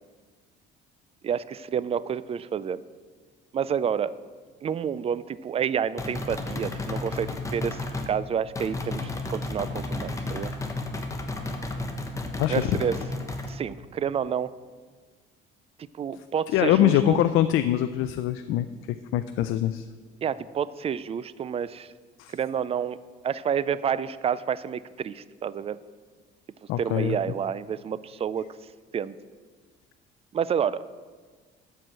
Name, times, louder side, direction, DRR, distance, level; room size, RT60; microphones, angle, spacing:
voice 1, 1.2-2.8 3.5-4.1 4.6-10.5 12.5-13.0 13.5-14.5 16.0-17.2 20.2-21.9 22.3-23.0 23.2-25.8 26.8-28.5 28.9-29.1 30.3-30.8, right 8 dB, 30° right, 17 dB, 0.3 m, -29 dB
sound 1, 6.0-8.1 8.5-13.5, left 2 dB, 15° left, 1.1 m, -32 dB
voice 2, 12.4-12.8 16.5-19.9 22.2-22.3 26.7-27.2, left 12 dB, 75° left, 11 dB, 0.5 m, -23 dB
13.0 x 4.7 x 7.5 m, 1.5 s
cardioid pair, 125°, 21 cm